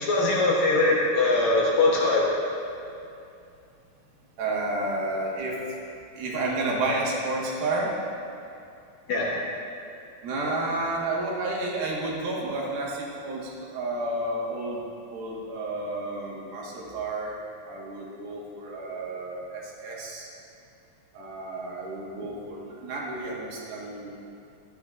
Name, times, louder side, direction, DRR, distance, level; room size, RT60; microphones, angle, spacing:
voice 1, 0.0-2.3 9.1-9.4, left 2 dB, 65° left, -4 dB, 2.0 m, -22 dB
voice 2, 4.4-5.6 6.2-8.0 10.2-14.8 15.1-17.4 17.6-20.3 21.1-24.1, right 2 dB, 85° right, -4 dB, 3.4 m, -31 dB
14.0 x 11.0 x 2.5 m, 2.6 s
omnidirectional pair, 4.1 m